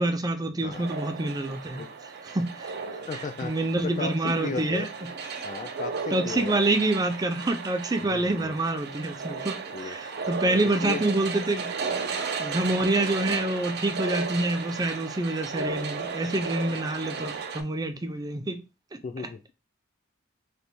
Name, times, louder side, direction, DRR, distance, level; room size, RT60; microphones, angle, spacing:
voice 1, 0.0-1.8 2.3-2.7 3.4-4.9 6.1-11.7 12.4-18.6, right 2 dB, 20° right, 0.5 m, -27 dB
sound 1, 0.7-17.6, right 5 dB, 55° right, 0.7 m, -35 dB
voice 2, 3.0-3.5 3.8-4.9 5.4-6.8 8.0-8.6 9.7-10.0 10.5-11.0 19.0-19.5, left 4 dB, 40° left, 0.3 m, -35 dB
3.3 x 2.9 x 4.1 m
head